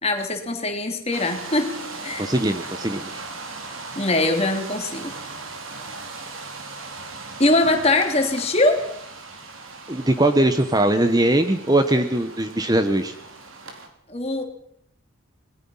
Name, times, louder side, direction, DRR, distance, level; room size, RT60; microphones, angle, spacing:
voice 1, 0.0-1.7 2.0-2.3 3.9-5.2 7.4-8.8 14.1-14.4, left 2 dB, 30° left, 4 dB, 3.2 m, -22 dB
sound 1, 1.1-13.9, right 3 dB, 70° right, 3.8 m, -38 dB
voice 2, 2.2-3.2 9.9-13.1, right 1 dB, 20° right, 9 dB, 1.1 m, -21 dB
27.0 x 20.5 x 5.7 m, 0.70 s
head